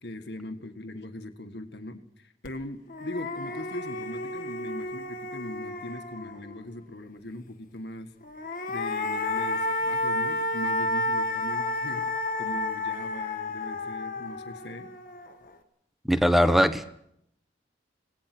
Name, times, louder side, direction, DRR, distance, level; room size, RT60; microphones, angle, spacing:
voice 1, 0.0-8.1 8.7-12.1 12.4-14.9, left 1 dB, 60° left, 7 dB, 1.8 m, -40 dB
sound 1, 2.4-2.5 2.9-6.6 8.2-15.5, left 2 dB, 45° left, 1.6 m, -31 dB
voice 2, 16.0-16.8, equal, ahead, 10 dB, 1.0 m, -20 dB
26.0 x 18.5 x 6.2 m, 0.76 s
head